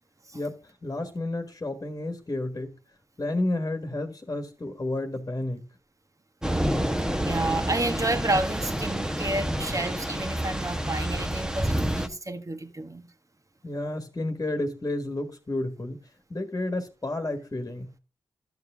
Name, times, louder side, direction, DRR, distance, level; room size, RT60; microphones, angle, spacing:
voice 1, 0.3-2.7 3.2-5.7 13.6-16.0 16.3-17.9, left 2 dB, 30° left, 1.7 m, -31 dB
Thunder / Rain, 6.4-12.1, equal, 5° right, 1.2 m, -28 dB
voice 2, 7.2-13.1, right 2 dB, 35° right, 1.7 m, -30 dB
12.0 x 6.9 x 3.5 m
supercardioid pair, 40°, 10 cm